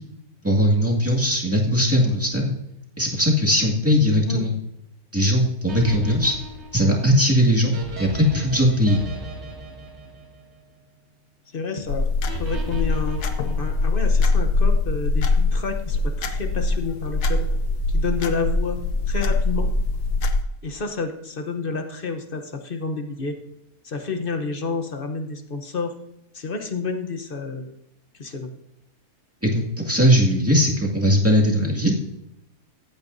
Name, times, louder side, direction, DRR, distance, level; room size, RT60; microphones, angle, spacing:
voice 1, 0.4-2.5 3.0-4.5 5.1-6.4 6.7-9.0 29.4-32.0, equal, 10° right, -3 dB, 1.9 m, -19 dB
voice 2, 4.1-4.4 11.5-12.1 12.4-13.2 13.6-17.5 17.9-18.8 19.1-19.7 20.6-23.4 23.8-25.9 26.3-27.7 28.2-28.5, left 4 dB, 40° left, 6 dB, 1.0 m, -29 dB
sound 1, 5.7-11.0 12.3-14.2, equal, 45° right, 2.4 m, -37 dB
sound 2, 11.9-20.4, left 3 dB, 85° left, 1.4 m, -22 dB
15.0 x 9.0 x 2.6 m, 0.83 s
omnidirectional pair, 1.6 m